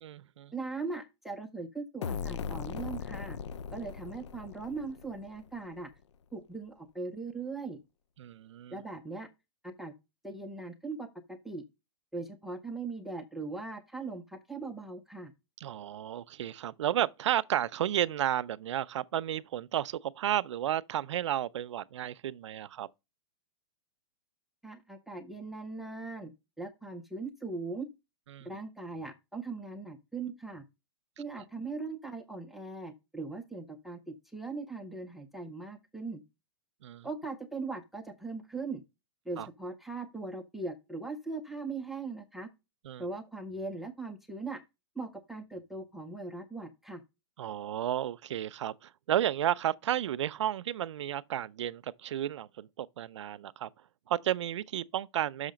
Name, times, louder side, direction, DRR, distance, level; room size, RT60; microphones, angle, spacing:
voice 1, 0.0-0.5 8.2-8.8 15.6-22.9 28.3-28.5 36.8-37.1 39.4-39.5 42.9-43.0 47.4-53.7 54.1-55.5, right 11 dB, 85° right, 0.5 m, -32 dB
voice 2, 0.5-3.4 3.7-5.9 6.3-7.8 8.7-9.3 9.6-9.9 10.2-11.6 12.1-15.3 24.6-26.3 26.6-27.9 28.4-30.6 31.2-36.2 37.0-38.8 39.3-42.5 43.0-44.6 45.0-47.0, right 3 dB, ahead, 0.5 m, -39 dB
sound 1, 2.0-5.7, left 6 dB, 90° left, 0.5 m, -39 dB
6.3 x 5.7 x 5.0 m
hypercardioid pair, 160°, 15 cm